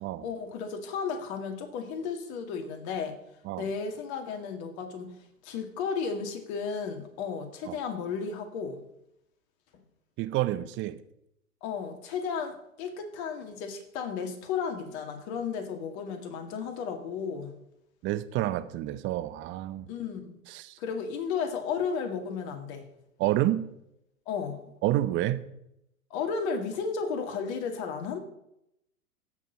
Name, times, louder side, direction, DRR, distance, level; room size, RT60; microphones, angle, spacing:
voice 1, 0.2-3.2 3.6-5.1 5.4-8.8 11.6-17.5 19.9-20.4 20.8-22.8 24.3-24.6 26.1-28.2, left 6 dB, 50° left, 5 dB, 2.4 m, -33 dB
voice 2, 10.2-11.0 18.0-19.9 20.5-20.8 23.2-23.7 24.8-25.4, right 14 dB, 25° right, 13 dB, 0.6 m, -29 dB
16.0 x 6.6 x 5.5 m, 0.81 s
hypercardioid pair, 110°, 44 cm